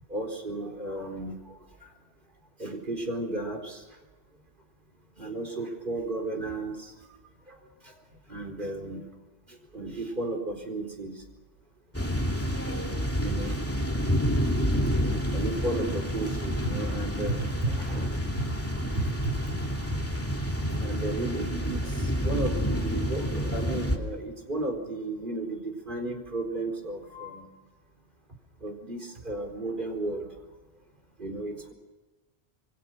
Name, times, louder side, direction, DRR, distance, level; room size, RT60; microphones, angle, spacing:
voice 1, 0.1-1.4 2.6-3.8 5.2-6.9 7.5-7.6 7.8-7.9 8.3-9.0 9.5-11.1 13.2-13.6 13.9-14.1 14.5-14.8 15.3-18.2 18.7-19.6 20.0-20.1 20.8-27.5 28.6-30.3 31.2-31.7, right 2 dB, 50° right, 2 dB, 4.4 m, -34 dB
sound 1, 11.9-24.0, equal, 10° left, 2.6 m, -29 dB
27.5 x 23.5 x 6.4 m, 1.2 s
omnidirectional pair, 1.1 m